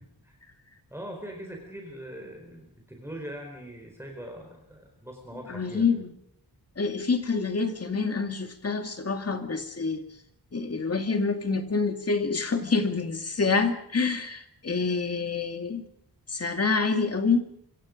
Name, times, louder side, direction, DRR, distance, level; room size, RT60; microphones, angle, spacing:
voice 1, 0.9-5.9, right 1 dB, 5° right, 1 dB, 4.4 m, -41 dB
voice 2, 5.5-6.1 6.8-10.0 10.5-15.8 16.3-17.5, left 4 dB, 35° left, 6 dB, 2.3 m, -27 dB
26.0 x 25.0 x 5.2 m, 0.69 s
wide cardioid pair, 145°, 40 cm